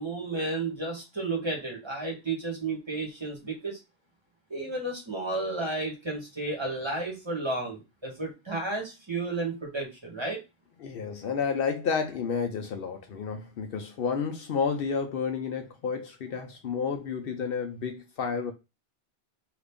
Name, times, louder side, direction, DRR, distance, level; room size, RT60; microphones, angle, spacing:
voice 1, 0.0-3.8 4.5-10.4, right 2 dB, 25° right, 1.1 m, -32 dB
voice 2, 10.8-18.5, left 6 dB, 65° left, 0.7 m, -31 dB
2.9 x 2.4 x 3.4 m
omnidirectional pair, 1.1 m